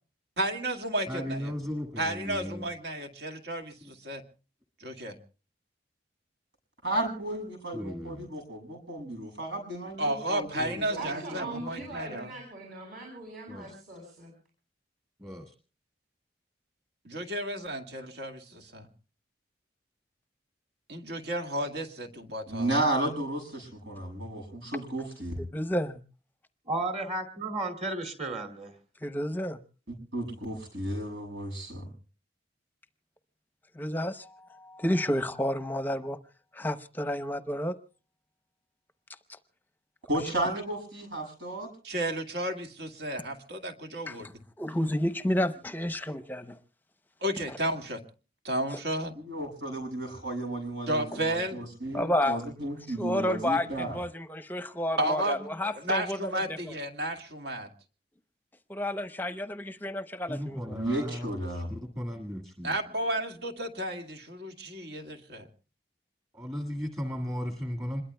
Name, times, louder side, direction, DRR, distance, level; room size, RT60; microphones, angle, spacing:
voice 1, 0.4-1.5 2.0-4.2 4.8-5.2 10.0-12.3 17.0-18.9 20.9-22.7 41.8-44.3 47.2-48.0 48.4-49.1 50.9-51.6 55.0-57.7 62.6-65.5, right 1 dB, 70° right, 2.0 m, -33 dB
voice 2, 1.1-2.7 3.8-3.9 7.7-8.3 10.6-10.8 13.5-13.7 15.2-15.5 60.3-62.7 66.3-68.0, equal, 20° right, 1.7 m, -36 dB
voice 3, 6.8-11.6 22.5-25.4 30.1-31.9 40.1-41.7 49.2-54.0 60.7-61.7, right 1 dB, 90° right, 7.3 m, -33 dB
voice 4, 11.0-14.3, right 2 dB, 55° right, 6.9 m, -41 dB
voice 5, 25.5-26.0 29.0-29.6 33.7-36.2 36.5-37.8 44.1-44.2 44.6-46.6 51.9-52.4 53.0-56.7 58.7-60.8, left 1 dB, 10° left, 0.7 m, -30 dB
voice 6, 26.6-28.8, right 2 dB, 35° right, 2.5 m, -33 dB
26.5 x 21.5 x 2.2 m
head